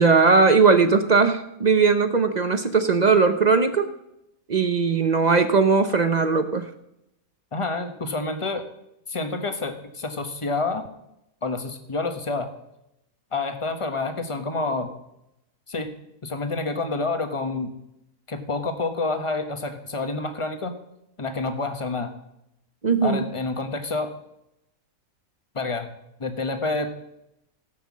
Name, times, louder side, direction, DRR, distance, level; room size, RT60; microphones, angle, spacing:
voice 1, 0.0-3.9 4.5-6.7 22.8-23.2, right 4 dB, 40° right, 9 dB, 0.6 m, -19 dB
voice 2, 7.5-8.7 9.1-10.8 11.4-12.5 13.3-14.9 15.7-15.9 16.2-17.7 18.3-20.7 21.2-22.1 23.0-24.1 25.5-25.9 26.2-26.9, left 3 dB, 25° left, 7 dB, 1.1 m, -28 dB
17.0 x 5.8 x 7.3 m, 0.85 s
omnidirectional pair, 1.5 m